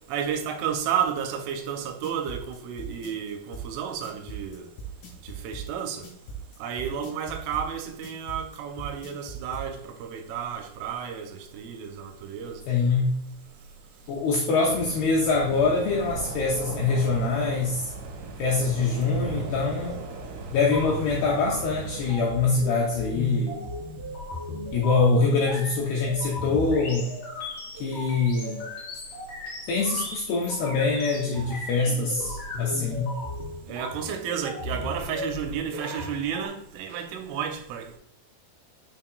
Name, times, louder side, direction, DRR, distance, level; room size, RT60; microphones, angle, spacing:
voice 1, 0.1-4.7 5.2-6.1 6.6-12.6 33.7-38.0, right 8 dB, 85° right, 3.3 m, -32 dB
sound 1, 2.0-9.7, right 4 dB, 60° left, 2.8 m, -39 dB
voice 2, 12.7-13.2 14.1-17.9 18.4-20.0 20.5-23.6 24.7-27.2 27.8-28.7 29.7-33.2, left 4 dB, 90° left, 2.3 m, -24 dB
sound 2, 14.6-22.1, right 3 dB, 70° right, 3.4 m, -37 dB
sound 3, 20.6-36.5, left 2 dB, 45° left, 2.3 m, -36 dB
7.1 x 5.8 x 2.3 m
omnidirectional pair, 5.6 m